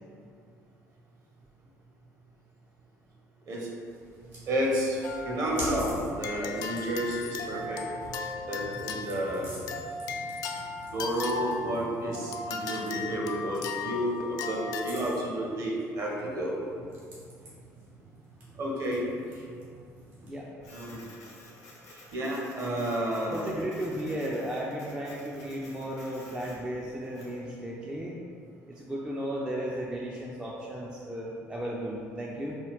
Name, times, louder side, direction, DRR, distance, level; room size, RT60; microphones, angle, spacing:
sound 1, 3.9-20.5, right 1 dB, 70° right, 1.2 m, -46 dB
voice 1, 4.5-7.8 8.4-9.5 10.9-16.6 18.6-19.0 20.7-21.0 22.1-23.4, equal, 45° right, -2 dB, 1.0 m, -31 dB
sound 2, 5.0-14.8, left 4 dB, 50° left, 0.3 m, -37 dB
Printer, 20.6-27.4, left 2 dB, 75° left, 0.9 m, -52 dB
voice 2, 23.3-28.2 28.7-32.6, equal, 10° right, -3 dB, 0.4 m, -35 dB
4.7 x 2.4 x 3.5 m, 2.3 s
figure-of-eight pair, 55°, 8 cm